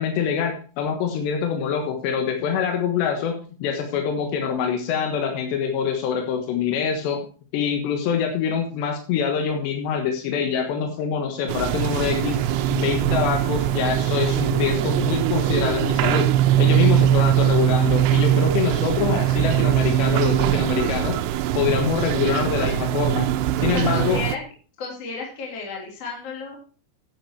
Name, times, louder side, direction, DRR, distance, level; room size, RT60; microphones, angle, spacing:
voice 1, 0.0-7.2 7.5-12.4 12.7-21.2 21.6-23.3 23.6-24.2, left 7 dB, 85° left, 3 dB, 3.6 m, -25 dB
sound 1, 11.5-24.4, right 12 dB, 85° right, 2.9 m, -21 dB
voice 2, 23.6-24.4 24.8-26.6, left 4 dB, 40° left, -2 dB, 3.8 m, -33 dB
10.5 x 9.1 x 4.7 m, 0.38 s
omnidirectional pair, 4.8 m